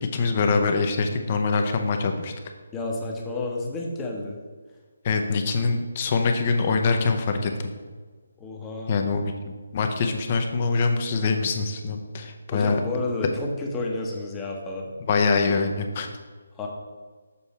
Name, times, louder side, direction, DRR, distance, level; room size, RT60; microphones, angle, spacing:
voice 1, 0.0-2.3 5.0-7.7 8.9-12.8 15.0-16.1, left 4 dB, 35° left, 5 dB, 0.7 m, -24 dB
voice 2, 2.7-4.4 8.4-8.9 12.5-14.9 16.5-16.7, left 2 dB, 15° left, -1 dB, 0.9 m, -30 dB
7.0 x 4.5 x 4.2 m, 1.5 s
figure-of-eight pair, 155°, 0 cm